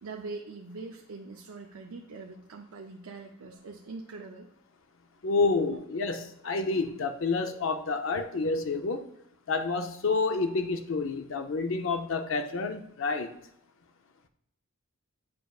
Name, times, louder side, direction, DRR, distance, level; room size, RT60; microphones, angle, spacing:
voice 1, 0.0-4.5 5.6-5.8 8.2-8.3, right 3 dB, 80° right, 0.5 m, -43 dB
voice 2, 5.2-9.1 9.5-13.3, left 3 dB, 65° left, 0.5 m, -29 dB
8.3 x 5.1 x 2.3 m
head